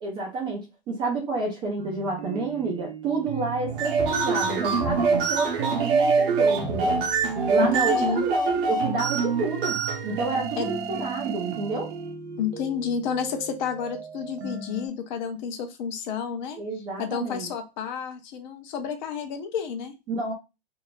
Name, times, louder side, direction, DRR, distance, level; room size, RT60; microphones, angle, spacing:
voice 1, 0.0-7.0 7.5-9.8 10.1-11.9 16.6-17.5 20.1-20.3, right 3 dB, 15° right, -2 dB, 0.4 m, -29 dB
sound 1, 1.8-14.9, right 6 dB, 85° right, 0.8 m, -37 dB
sound 2, 3.7-11.9, right 4 dB, 55° right, 0.8 m, -25 dB
voice 2, 7.6-8.3 10.6-10.7 12.4-16.6 17.0-19.9, left 7 dB, 45° left, 7 dB, 0.6 m, -30 dB
2.6 x 2.0 x 3.0 m, 0.25 s
hypercardioid pair, 150°, 32 cm